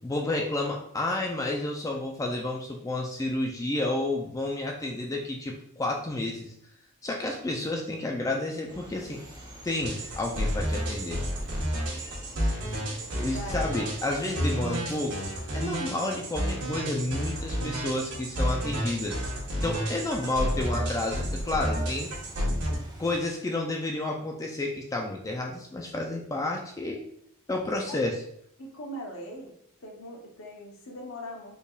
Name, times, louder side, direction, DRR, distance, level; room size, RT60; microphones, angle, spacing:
voice 1, 0.0-6.5 7.0-9.2 9.6-11.2 13.1-15.2 15.5-19.2 19.6-22.1 23.0-27.1 27.5-28.2, left 2 dB, 15° left, 0 dB, 0.3 m, -30 dB
sound 1, 8.7-23.2, equal, 20° right, 0.7 m, -48 dB
sound 2, 9.8-22.8, equal, 85° right, 1.4 m, -31 dB
voice 2, 13.3-13.8 27.9-28.0 28.6-29.5 29.8-31.6, equal, 60° left, 1 dB, 0.9 m, -40 dB
4.3 x 3.5 x 2.4 m, 0.70 s
head